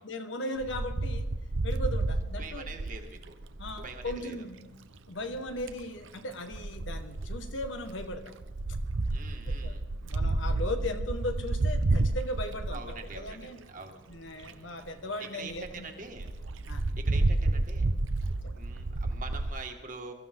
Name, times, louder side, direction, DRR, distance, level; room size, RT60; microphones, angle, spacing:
voice 1, 0.0-1.3 1.6-2.7 3.6-4.7 5.1-8.3 9.5-9.8 10.0-13.6 14.1-15.9 16.7-16.8 18.4-18.6, left 1 dB, 80° left, 6 dB, 1.6 m, -37 dB
Wind, 0.6-4.2 5.3-5.8 6.5-13.5 14.1-14.2 14.4-14.5 14.9-15.0 15.2-15.3 15.6-15.7 16.2-19.5, right 2 dB, 85° right, 0.8 m, -30 dB
voice 2, 2.4-3.3 3.8-4.5 9.1-9.8 12.7-14.0 14.4-14.7 15.3-16.3 17.0-17.9 18.5-20.1, right 3 dB, 45° right, 3 dB, 1.9 m, -44 dB
23.0 x 14.0 x 3.7 m, 1.0 s
head